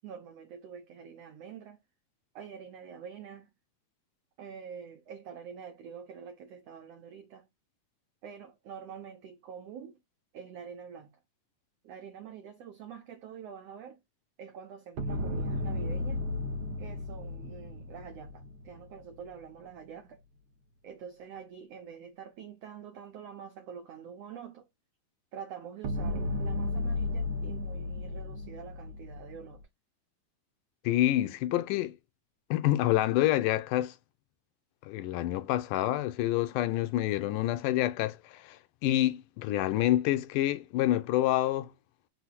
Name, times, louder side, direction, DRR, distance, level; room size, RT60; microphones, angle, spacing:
voice 1, 0.0-1.8 2.3-3.5 4.4-7.5 8.2-10.0 10.3-11.1 11.8-14.0 14.4-16.3 16.8-20.2 20.8-24.7 25.3-29.6, right 7 dB, 85° right, 1.4 m, -46 dB
sound 1, 15.0-19.3 25.8-29.6, left 2 dB, 65° right, 1.3 m, -34 dB
voice 2, 30.8-32.0 32.5-34.0 34.8-41.7, left 14 dB, 80° left, 2.0 m, -27 dB
5.7 x 2.2 x 4.0 m
omnidirectional pair, 3.8 m